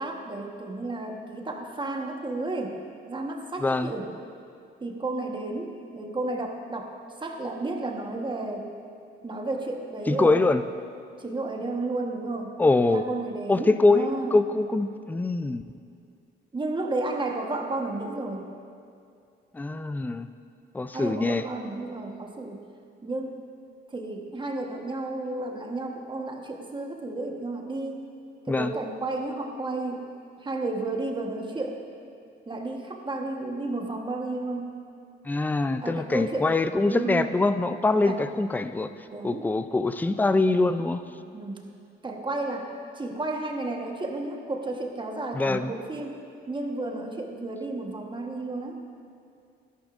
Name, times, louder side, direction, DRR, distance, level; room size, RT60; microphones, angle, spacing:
voice 1, 0.0-2.8 3.1-4.1 4.8-6.9 7.2-8.7 9.2-10.4 11.2-12.6 12.9-14.4 16.5-18.5 20.9-22.6 23.0-23.4 23.9-28.0 28.5-30.1 30.4-31.8 32.5-34.7 35.8-36.5 36.8-37.4 38.1-38.2 39.1-39.5 41.3-41.6 42.0-42.7 42.9-46.2 46.5-48.8, right 2 dB, 25° right, 2 dB, 1.2 m, -32 dB
voice 2, 3.6-3.9 10.1-10.6 12.6-13.0 13.5-15.6 19.5-20.3 20.7-21.4 28.5-28.7 35.2-38.9 39.2-41.0 45.3-45.7, left 3 dB, 10° left, 11 dB, 0.4 m, -23 dB
12.0 x 11.0 x 2.5 m, 2.4 s
cardioid pair, 90°, 20 cm